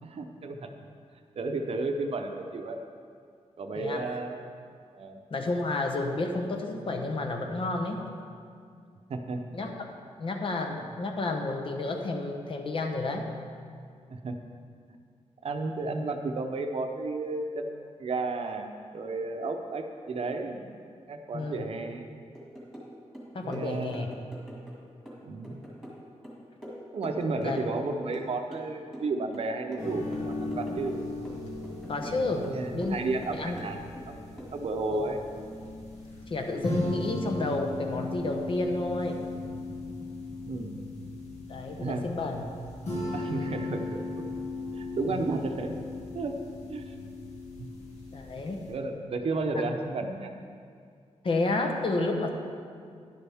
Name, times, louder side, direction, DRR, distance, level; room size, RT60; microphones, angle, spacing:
voice 1, 0.0-0.7 1.4-2.8 3.6-4.4 4.9-5.2 9.1-9.6 14.1-14.4 15.4-20.7 21.1-22.1 23.4-24.1 25.2-25.6 26.9-31.0 32.4-34.1 34.5-35.2 40.5-40.8 41.8-42.1 43.1-44.2 44.7-45.8 46.1-46.4 46.7-46.9 47.6-47.7 48.7-50.3, right 3 dB, 55° right, 5 dB, 0.8 m, -33 dB
voice 2, 3.8-4.2 5.3-8.0 9.5-9.9 10.2-13.3 21.3-21.7 23.3-24.1 27.4-27.6 31.9-33.0 33.3-33.6 34.9-35.2 36.3-39.2 41.5-42.4 45.1-45.3 48.1-48.6 49.5-49.7 51.2-52.3, left 2 dB, 50° left, 3 dB, 0.9 m, -31 dB
sound 1, 22.3-22.9 23.1-24.8 25.1-27.9 28.1-29.1 29.3-31.0 31.2-32.2 32.4-34.1 34.4-34.6, equal, 5° left, 2.1 m, -44 dB
sound 2, 29.8-48.7, left 2 dB, 65° left, 2.2 m, -37 dB
11.5 x 11.0 x 3.5 m, 2.2 s
wide cardioid pair, 170°, 12 cm